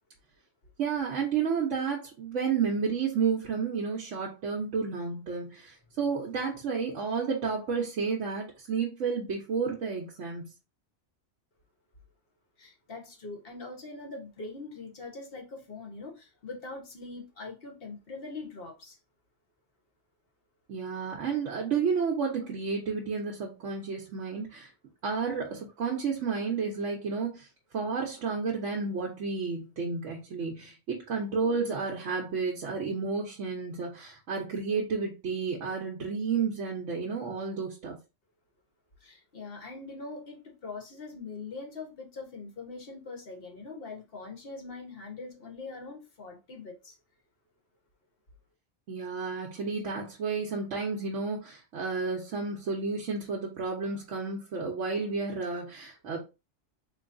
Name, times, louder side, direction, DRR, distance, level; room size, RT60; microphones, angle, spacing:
voice 1, 0.8-10.4 20.7-24.7 25.0-27.5 27.7-38.0 48.9-56.2, right 5 dB, 85° right, 1.2 m, -31 dB
voice 2, 12.6-19.0 39.0-47.0, left 3 dB, 55° left, 1.2 m, -42 dB
3.9 x 3.0 x 2.5 m
omnidirectional pair, 1.2 m